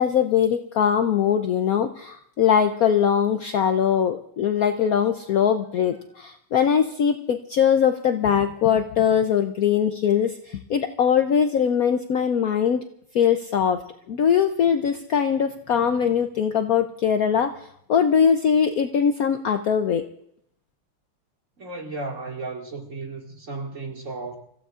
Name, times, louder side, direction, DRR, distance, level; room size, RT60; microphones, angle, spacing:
voice 1, 0.0-12.8 13.1-13.8 14.1-17.5 17.9-20.0, left 8 dB, 85° left, 0.7 m, -21 dB
voice 2, 21.6-24.4, right 3 dB, 35° right, 2.4 m, -34 dB
29.5 x 15.5 x 2.5 m
omnidirectional pair, 2.4 m